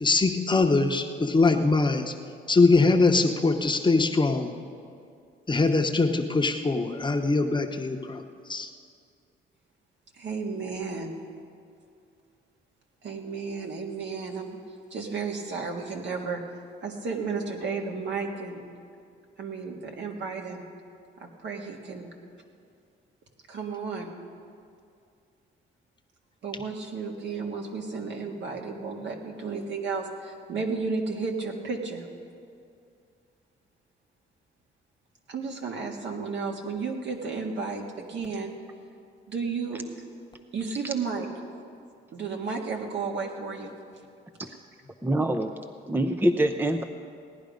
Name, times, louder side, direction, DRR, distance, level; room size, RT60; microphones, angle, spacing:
voice 1, 0.0-2.1 2.5-4.5 5.5-8.2 8.5-8.7, left 3 dB, 25° left, 4 dB, 0.9 m, -22 dB
voice 2, 10.1-11.1 13.0-14.6 14.9-16.4 16.8-18.6 19.4-20.6 21.2-22.1 23.5-24.1 26.4-32.1 35.3-38.5 39.3-39.8 40.5-41.3 42.1-43.7, right 4 dB, 65° right, 1 dB, 1.8 m, -33 dB
voice 3, 45.0-45.5 45.9-46.8, right 1 dB, 10° right, 7 dB, 0.5 m, -24 dB
17.0 x 10.5 x 5.2 m, 2.4 s
cardioid pair, 90°, 20 cm